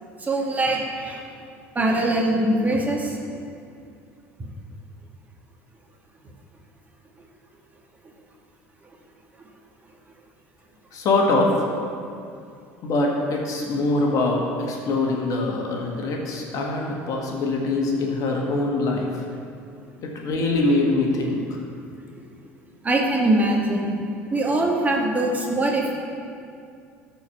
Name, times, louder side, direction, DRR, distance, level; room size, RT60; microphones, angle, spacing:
voice 1, 0.2-1.2 1.8-3.2 22.8-23.9 24.3-25.9, right 1 dB, 20° right, -1 dB, 1.9 m, -22 dB
voice 2, 10.9-11.5 12.8-19.1 20.0-21.6, left 2 dB, 55° left, 0 dB, 1.8 m, -23 dB
13.0 x 4.8 x 5.9 m, 2.4 s
hypercardioid pair, 70°, 7 cm